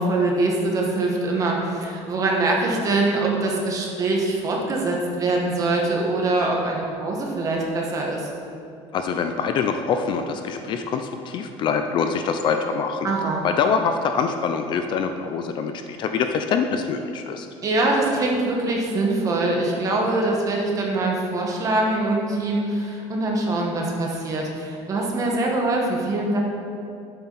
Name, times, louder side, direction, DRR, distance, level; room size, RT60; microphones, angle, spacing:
voice 1, 0.0-8.3 13.0-13.4 17.6-26.4, right 2 dB, 25° right, -1 dB, 1.6 m, -23 dB
voice 2, 8.9-13.1 13.4-17.5, left 6 dB, 40° left, 6 dB, 0.5 m, -24 dB
11.5 x 8.0 x 4.2 m, 2.6 s
cardioid pair, 160°, 12 cm